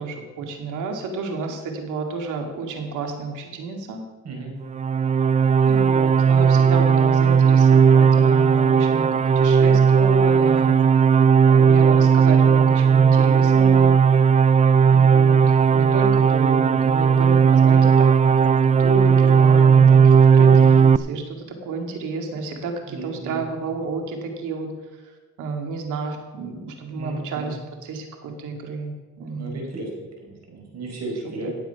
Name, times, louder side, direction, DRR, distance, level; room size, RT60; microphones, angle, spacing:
voice 1, 0.0-4.0 5.7-10.7 11.5-14.0 14.9-15.4 15.7-24.7 25.4-29.6 31.4-31.5, right 3 dB, 90° right, 4 dB, 2.2 m, -31 dB
sound 1, 4.7-21.0, right 6 dB, 25° right, 0.4 m, -16 dB
voice 2, 10.5-10.8 22.9-23.4 27.0-27.5 29.3-31.5, right 3 dB, 60° right, 0 dB, 4.8 m, -34 dB
17.0 x 7.6 x 5.6 m, 1.3 s
cardioid pair, 90°, 30 cm